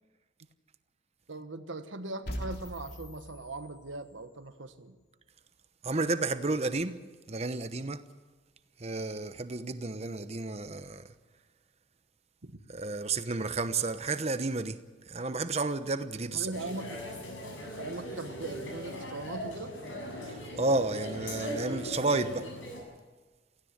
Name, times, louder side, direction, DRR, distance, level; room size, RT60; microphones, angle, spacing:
voice 1, 1.3-5.0 12.4-12.6 16.3-17.1 17.8-19.8, right 2 dB, 90° right, 1.4 m, -40 dB
sound 1, 2.3-4.3, equal, 55° left, 3.4 m, -41 dB
voice 2, 5.8-7.0 7.3-8.0 8.8-11.0 12.7-16.5 20.3-22.5, right 3 dB, 35° right, 0.9 m, -31 dB
sound 2, 16.5-22.8, equal, 85° left, 7.8 m, -39 dB
17.5 x 16.5 x 9.8 m
head